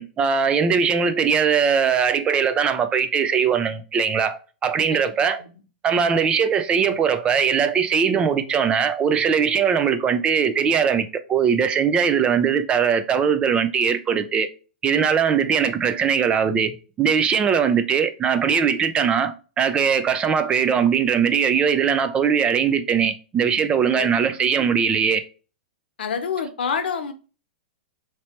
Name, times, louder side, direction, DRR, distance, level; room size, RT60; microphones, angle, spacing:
voice 1, 0.0-5.4 5.8-14.5 14.8-25.2, right 7 dB, 20° right, 0.4 m, -20 dB
voice 2, 4.9-5.5 23.9-24.3 26.0-27.1, left 6 dB, 85° left, 0.9 m, -28 dB
3.1 x 2.9 x 4.3 m
hypercardioid pair, 145°, 5 cm